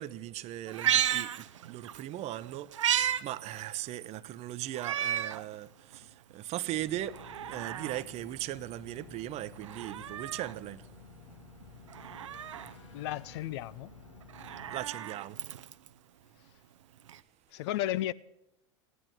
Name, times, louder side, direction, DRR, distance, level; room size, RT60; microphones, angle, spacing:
voice 1, 0.0-7.2 7.5-10.8 14.7-15.4, right 14 dB, 45° right, 0.8 m, -38 dB
Meow, 0.7-2.0 2.4-3.2 3.6-3.7 4.7-5.4 5.9-6.0 7.0-8.0 9.6-10.6 11.9-12.7 14.2-15.9 17.1-17.2, right 10 dB, 80° right, 0.7 m, -33 dB
sound 1, 6.7-14.9, left 3 dB, 90° left, 2.1 m, -53 dB
voice 2, 12.9-13.9 17.5-18.1, left 14 dB, 60° left, 0.6 m, -33 dB
15.5 x 11.0 x 8.1 m
hypercardioid pair, 85°, 16 cm